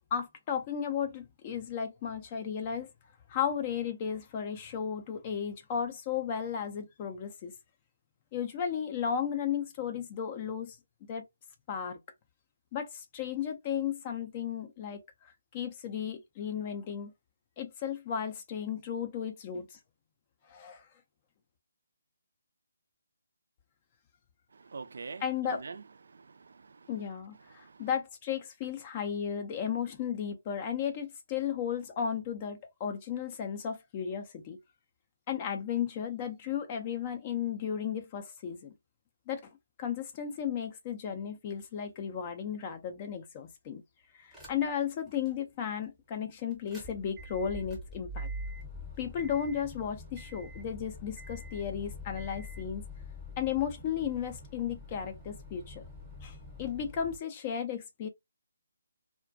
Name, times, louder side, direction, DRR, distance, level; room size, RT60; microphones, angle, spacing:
voice 1, 0.1-2.9 3.3-7.5 8.3-10.8 11.1-11.3 11.7-12.0 12.7-17.1 17.6-19.8 20.5-20.9 25.2-25.7 26.9-34.6 35.3-38.7 39.3-39.5 39.8-43.8 44.1-48.3 49.0-52.8 53.4-55.8 56.2-58.1, left 8 dB, 25° left, 0.4 m, -34 dB
voice 2, 24.5-26.9 27.5-27.9, right 4 dB, 60° right, 0.3 m, -46 dB
sound 1, 44.3-44.8 45.3-45.4 46.5-57.2, left 1 dB, ahead, 0.8 m, -44 dB
2.3 x 2.2 x 2.4 m
figure-of-eight pair, 155°, 0 cm